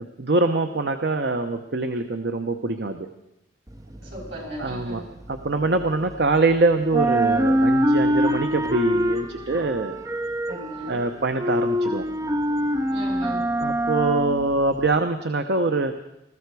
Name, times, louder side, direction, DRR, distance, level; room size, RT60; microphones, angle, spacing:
voice 1, 0.0-3.1 4.6-5.0 5.3-10.0 10.9-12.1 13.6-15.9, right 3 dB, 60° right, 7 dB, 0.8 m, -24 dB
sound 1, 3.7-6.5 6.8-15.0, equal, 20° right, 0.6 m, -24 dB
voice 2, 4.0-5.1 10.5-11.0 12.9-13.4, equal, 75° right, -4 dB, 7.9 m, -36 dB
21.0 x 14.5 x 4.7 m, 0.87 s
head